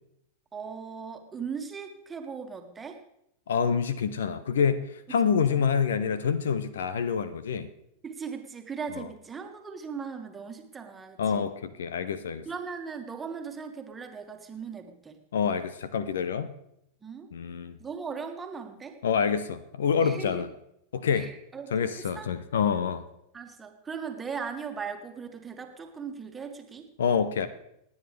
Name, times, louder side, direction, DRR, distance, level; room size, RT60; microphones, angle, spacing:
voice 1, 0.5-3.0 5.2-5.7 8.0-11.4 12.5-15.2 17.0-17.3 17.8-19.0 20.0-20.4 21.1-21.7 22.0-22.3 23.3-26.9, right 6 dB, 15° right, 5 dB, 1.7 m, -38 dB
voice 2, 3.5-7.7 9.0-9.1 11.2-12.5 15.3-16.5 17.3-17.8 19.0-20.5 20.9-21.3 21.7-23.0 27.0-27.5, left 6 dB, 65° left, 15 dB, 0.8 m, -27 dB
29.0 x 9.7 x 3.4 m, 0.80 s
figure-of-eight pair, 90°, 0 cm